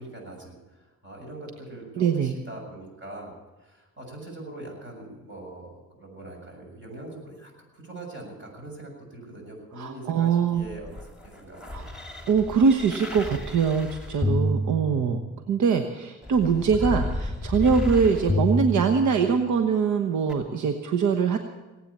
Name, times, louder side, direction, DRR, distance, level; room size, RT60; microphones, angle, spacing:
voice 1, 0.0-3.3 3.6-11.9, right 2 dB, 40° right, 1 dB, 7.2 m, -42 dB
voice 2, 2.0-2.3 9.8-10.7 11.7-11.9 12.3-15.2 15.5-21.4, right 6 dB, 75° right, 6 dB, 1.2 m, -23 dB
sound 1, 10.6-15.5 16.2-19.5 20.3-20.4, left 1 dB, 5° right, 3.0 m, -30 dB
19.0 x 9.0 x 8.6 m, 1.2 s
cardioid pair, 90°, 30 cm